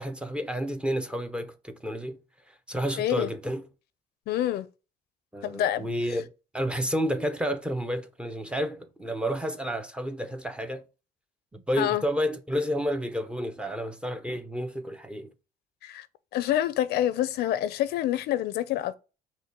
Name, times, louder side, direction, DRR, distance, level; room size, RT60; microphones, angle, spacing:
voice 1, 0.0-2.2 2.7-3.6 5.3-6.3 6.5-10.8 11.5-15.3, equal, 5° right, 0.6 m, -30 dB
voice 2, 3.0-3.3 4.3-4.7 5.4-5.9 11.8-12.0 15.8-16.1 16.3-18.9, left 12 dB, 70° left, 0.5 m, -27 dB
5.2 x 2.2 x 4.6 m
cardioid pair, 110°, 17 cm